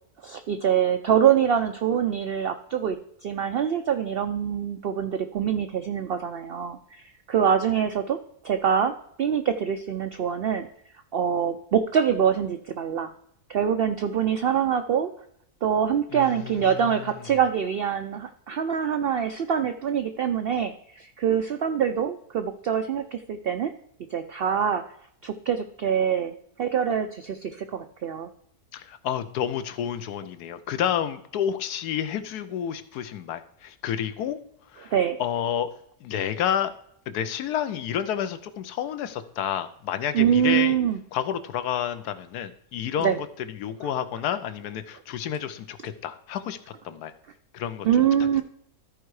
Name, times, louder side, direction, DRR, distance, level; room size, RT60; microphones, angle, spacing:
voice 1, 0.2-3.0 3.2-8.2 8.4-10.7 11.1-13.1 13.5-15.1 15.6-23.7 24.1-24.9 25.2-28.3 34.9-35.2 40.1-41.0 43.0-43.2 47.8-48.4, right 8 dB, 85° right, 9 dB, 0.5 m, -24 dB
voice 2, 16.1-17.0 28.7-34.4 34.7-34.9 35.2-35.7 36.0-36.7 37.1-40.8 41.1-43.2 43.5-46.6 46.8-47.1 47.5-47.9, left 9 dB, 85° left, 12 dB, 1.2 m, -30 dB
13.5 x 4.5 x 4.7 m, 0.70 s
omnidirectional pair, 1.6 m